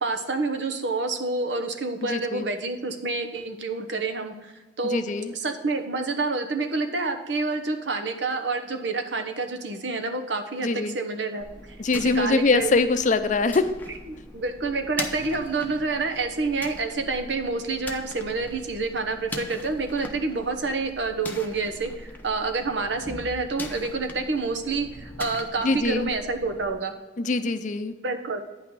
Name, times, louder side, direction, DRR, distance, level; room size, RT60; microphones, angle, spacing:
voice 1, 0.0-5.1 5.3-12.7 14.3-26.9 28.0-28.4, right 3 dB, 75° right, 6 dB, 1.0 m, -28 dB
voice 2, 2.0-2.5 4.8-5.3 10.6-11.0 11.8-13.7 25.6-26.1 27.2-27.9, left 3 dB, 45° left, 9 dB, 0.6 m, -23 dB
sound 1, 11.4-26.7, left 2 dB, 10° left, 0.8 m, -41 dB
9.4 x 5.9 x 4.8 m, 1.1 s
head